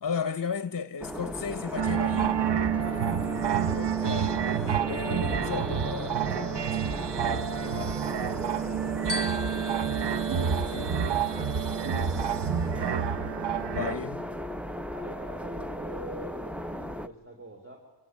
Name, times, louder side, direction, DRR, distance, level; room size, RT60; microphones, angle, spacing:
voice 1, 0.0-2.4 3.7-7.1 7.6-8.0 10.3-10.4 10.7-11.0 13.7-14.2, left 6 dB, 55° left, 0.8 m, -35 dB
sound 1, 1.0-17.1, equal, 5° right, 0.8 m, -36 dB
sound 2, 1.8-13.9, right 8 dB, 80° right, 0.7 m, -29 dB
voice 2, 3.2-3.6 14.9-17.8, right 1 dB, 30° right, 3.5 m, -45 dB
Glockenspiel, 9.1-11.6, left 2 dB, 25° left, 2.1 m, -40 dB
27.0 x 19.0 x 9.5 m
wide cardioid pair, 60°, 41 cm